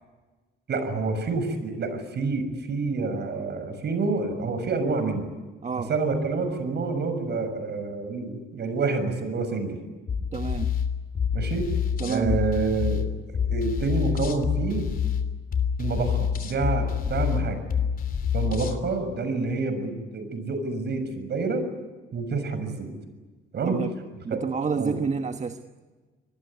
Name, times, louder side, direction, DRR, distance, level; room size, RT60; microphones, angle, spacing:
voice 1, 0.7-5.3 5.9-9.8 11.3-11.7 12.0-13.1 13.5-14.8 15.8-17.6 18.3-21.7 22.1-22.9 23.5-23.8 24.3-24.4 24.8-24.9, right 4 dB, 60° right, 9 dB, 6.4 m, -28 dB
sound 1, 10.1-18.8, left 7 dB, 45° left, 3.1 m, -27 dB
voice 2, 10.3-10.7 12.0-12.4 23.6-23.9 24.2-25.6, right 5 dB, 35° right, 7 dB, 1.4 m, -29 dB
25.5 x 20.0 x 9.8 m, 1.3 s
cardioid pair, 90°, 20 cm